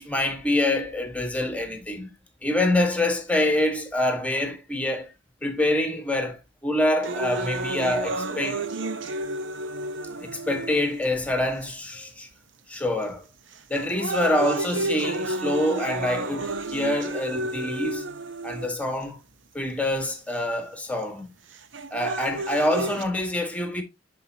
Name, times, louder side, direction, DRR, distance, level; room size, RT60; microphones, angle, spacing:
voice 1, 0.0-2.1 2.4-5.1 5.4-8.6 10.2-12.3 12.7-13.2 13.7-18.1 18.4-19.2 19.5-21.3 21.9-23.8, left 1 dB, 5° left, 1.5 m, -26 dB
sound 1, 7.0-11.1 11.8-11.9 12.7-13.0 13.5-19.0 20.0-20.1 21.5-23.0, right 2 dB, 80° right, 0.9 m, -31 dB
10.5 x 4.6 x 2.8 m
head